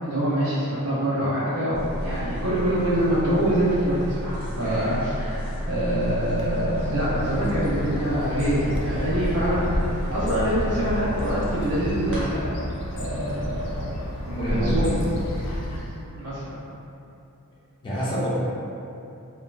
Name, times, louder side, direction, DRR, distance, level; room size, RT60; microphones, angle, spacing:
voice 1, 0.0-12.5 12.9-13.9 14.3-15.0 15.7-15.8 16.1-16.6, right 1 dB, 70° right, -9 dB, 0.5 m, -25 dB
sound 1, 1.7-12.2, equal, 5° right, 0.9 m, -31 dB
Bird, 6.3-16.1, left 1 dB, 85° left, 0.4 m, -32 dB
voice 2, 14.4-15.0 17.8-18.3, equal, 20° left, -8 dB, 0.4 m, -27 dB
2.9 x 2.2 x 2.3 m, 2.7 s
head